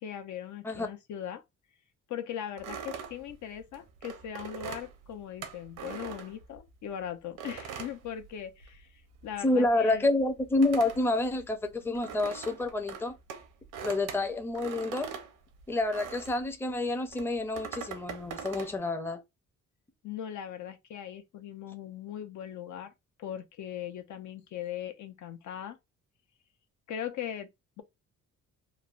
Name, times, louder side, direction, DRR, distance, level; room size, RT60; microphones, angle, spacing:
voice 1, 0.0-1.4 2.1-10.1 20.0-22.9 23.2-25.8 26.9-27.5, left 9 dB, 70° left, 0.6 m, -39 dB
sound 1, 2.6-6.9 7.4-8.9 9.1-16.5 17.1-18.8, right 7 dB, 85° right, 0.7 m, -42 dB
voice 2, 9.4-13.1 13.8-15.2 15.7-19.2, left 2 dB, 10° left, 0.5 m, -28 dB
3.2 x 2.0 x 2.4 m
cardioid pair, 90°, 30 cm